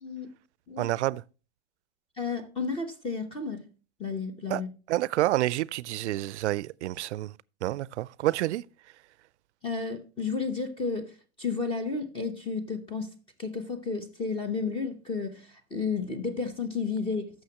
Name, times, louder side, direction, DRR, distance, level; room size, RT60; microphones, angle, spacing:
voice 1, 0.8-1.2 4.5-4.6 4.9-7.3 7.6-8.6, right 15 dB, 85° right, 0.5 m, -28 dB
voice 2, 2.2-3.7 4.0-4.7 9.6-11.1 11.4-13.1 13.4-17.3, left 4 dB, 15° left, 0.9 m, -32 dB
14.5 x 6.3 x 2.9 m
supercardioid pair, 150°, 33 cm